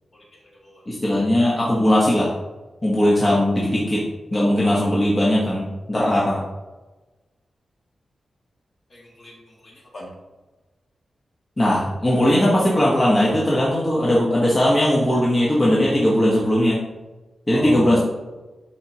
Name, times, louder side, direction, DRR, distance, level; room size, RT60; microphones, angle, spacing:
voice 1, 0.9-2.3 2.8-4.0 4.3-6.4 11.6-16.8 17.5-18.0, left 1 dB, 20° left, -6 dB, 1.2 m, -19 dB
voice 2, 8.9-10.1 17.5-18.0, equal, 40° left, -3 dB, 2.1 m, -36 dB
11.5 x 4.7 x 2.9 m, 1.2 s
wide cardioid pair, 170°, 0 cm